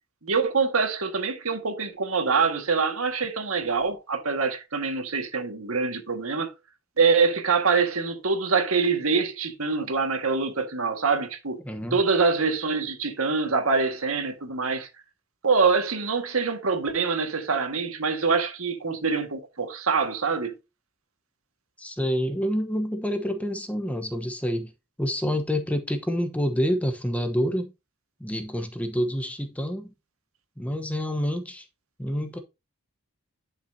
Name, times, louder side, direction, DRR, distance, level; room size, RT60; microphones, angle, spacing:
voice 1, 0.2-6.5 7.0-11.6 11.9-14.9 15.4-20.5, right 4 dB, 85° right, 1.7 m, -25 dB
voice 2, 11.6-12.0 21.8-24.7 25.0-27.7 28.2-29.9 30.6-31.7 32.0-32.4, equal, 5° left, 1.0 m, -27 dB
11.0 x 5.9 x 2.7 m
head